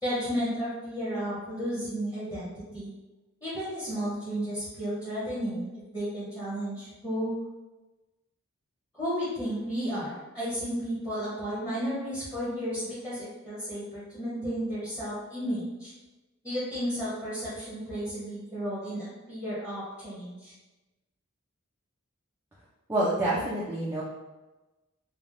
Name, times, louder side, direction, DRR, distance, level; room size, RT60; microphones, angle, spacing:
voice 1, 0.0-2.9 3.4-7.3 8.9-15.9 16.4-20.5, equal, 15° left, -10 dB, 0.9 m, -33 dB
voice 2, 22.9-24.0, right 1 dB, 10° right, -7 dB, 0.3 m, -27 dB
3.3 x 2.1 x 2.5 m, 1.1 s
head